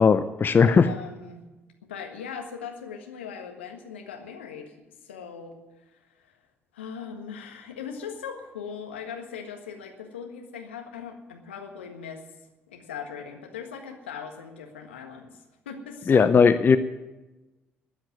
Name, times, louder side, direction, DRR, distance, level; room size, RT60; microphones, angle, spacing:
voice 1, 0.0-0.9 16.1-16.8, left 5 dB, 35° left, 12 dB, 0.7 m, -18 dB
voice 2, 0.6-1.5 1.9-4.7 5.0-5.6 6.2-6.3 6.7-12.2 12.7-16.3, left 6 dB, 80° left, 3 dB, 1.5 m, -39 dB
13.0 x 9.0 x 9.2 m, 1.1 s
figure-of-eight pair, 45°, 6 cm